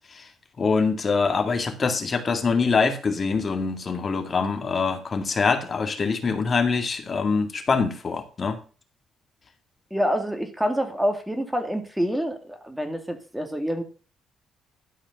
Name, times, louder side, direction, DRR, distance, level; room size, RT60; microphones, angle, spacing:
voice 1, 0.6-8.6, left 4 dB, 40° left, 7 dB, 2.1 m, -24 dB
voice 2, 9.9-13.8, equal, 5° right, 6 dB, 2.2 m, -27 dB
13.0 x 5.0 x 5.9 m, 0.35 s
cardioid pair, 90°, 0 cm